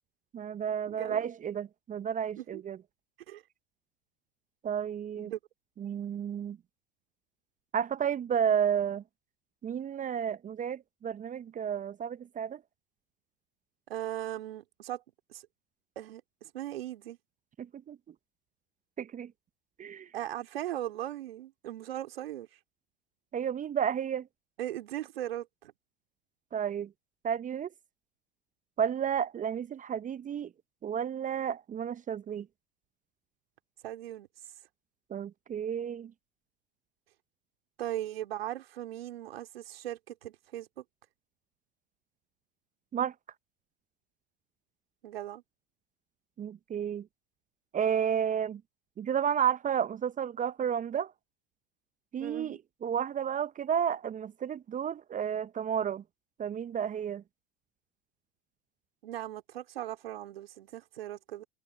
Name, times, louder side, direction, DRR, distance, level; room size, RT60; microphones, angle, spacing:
voice 1, 0.3-2.8 4.6-5.3 5.8-6.6 7.7-9.0 9.6-12.6 17.6-18.0 19.0-19.3 19.8-20.1 23.3-24.3 26.5-26.9 27.2-27.7 28.8-30.5 30.8-32.5 35.1-36.1 42.9-43.1 46.4-47.1 47.7-48.6 49.0-51.1 52.1-56.0 56.4-57.2, right 8 dB, 25° right, 0.8 m, -32 dB
voice 2, 0.9-1.2 2.4-2.6 3.3-3.4 5.2-5.4 13.9-15.0 15.3-15.4 16.0-17.2 20.1-22.5 24.6-25.7 33.8-34.3 37.8-40.8 45.0-45.4 52.2-52.6 59.0-61.5, right 13 dB, 75° right, 3.4 m, -38 dB
hypercardioid pair, 80°, 30 cm